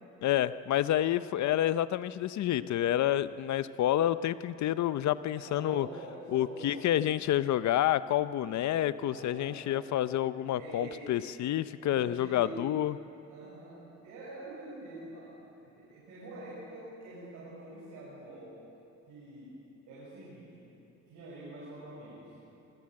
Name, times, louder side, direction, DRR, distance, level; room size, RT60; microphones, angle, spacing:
voice 1, 0.2-5.9 6.3-12.9, left 12 dB, 65° left, 15 dB, 0.7 m, -29 dB
voice 2, 5.3-6.9 8.4-10.0 10.6-11.2 11.8-12.6 13.3-15.3 15.6-18.6 19.1-19.5 19.9-20.7 21.1-22.3, right 2 dB, 90° right, -8 dB, 6.8 m, -46 dB
23.0 x 15.5 x 7.7 m, 3.0 s
cardioid pair, 90°, 30 cm